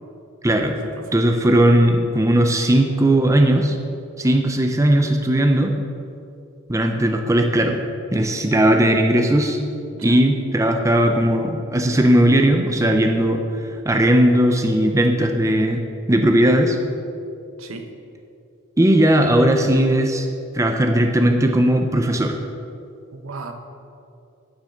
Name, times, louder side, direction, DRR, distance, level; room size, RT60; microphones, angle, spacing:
voice 1, 0.4-0.8 1.1-3.8 4.2-5.7 6.7-7.8 8.1-9.6 10.0-13.4 13.9-16.8 18.8-20.3 20.5-22.3, right 1 dB, 15° right, 4 dB, 0.6 m, -17 dB
voice 2, 23.1-23.5, right 4 dB, 75° right, 6 dB, 1.0 m, -35 dB
9.7 x 6.8 x 6.5 m, 2.5 s
head